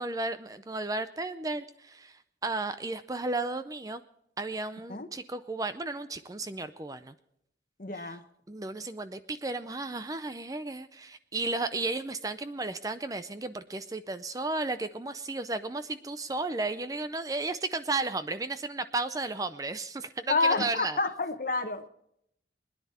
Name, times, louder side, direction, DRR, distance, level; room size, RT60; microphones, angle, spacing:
voice 1, 0.0-4.0 4.4-7.1 7.9-8.2 8.5-21.0, right 3 dB, 20° right, 11 dB, 0.5 m, -34 dB
voice 2, 7.8-8.2 20.3-21.9, left 3 dB, 45° left, 9 dB, 1.0 m, -29 dB
21.5 x 10.5 x 4.3 m, 0.75 s
head